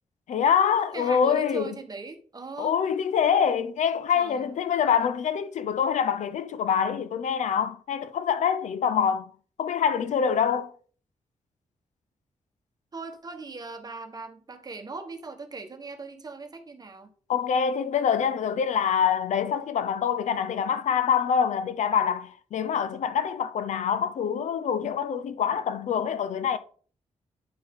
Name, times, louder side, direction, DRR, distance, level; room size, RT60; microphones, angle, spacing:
voice 1, 0.3-1.8 2.6-9.3 9.6-10.7 17.3-26.6, left 7 dB, 90° left, 0.6 m, -25 dB
voice 2, 0.9-2.8 4.2-4.5 12.9-17.1, right 3 dB, 35° right, 1.1 m, -39 dB
9.4 x 4.3 x 3.6 m
wide cardioid pair, 115°, 12 cm